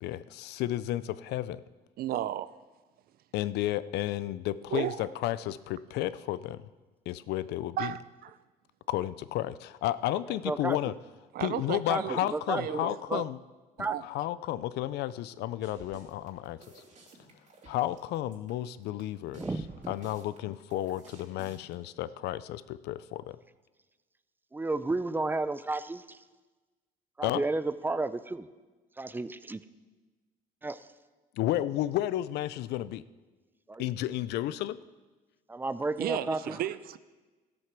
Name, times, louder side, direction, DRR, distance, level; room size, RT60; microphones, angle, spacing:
voice 1, 0.0-1.6 3.3-6.6 7.1-7.9 8.9-10.9 11.4-13.4 13.8-16.8 17.7-19.4 19.9-23.4 27.2-27.4 31.4-33.0 33.8-34.8, left 14 dB, 80° left, 16 dB, 0.5 m, -32 dB
voice 2, 2.0-2.5 4.7-5.0 7.8-8.3 11.3-13.2 13.8-14.0 36.0-37.0, right 12 dB, 60° right, 16 dB, 0.5 m, -34 dB
voice 3, 10.3-10.9 11.9-13.2 13.8-13.9 19.3-19.9 24.5-26.2 27.2-28.5 29.0-29.6 30.6-30.8 33.7-33.8 35.5-36.6, right 2 dB, 10° right, 14 dB, 0.5 m, -32 dB
sound 1, 15.6-21.7, right 2 dB, 45° right, 2.6 m, -53 dB
13.5 x 8.0 x 6.0 m, 1.3 s
cardioid pair, 110°, 17 cm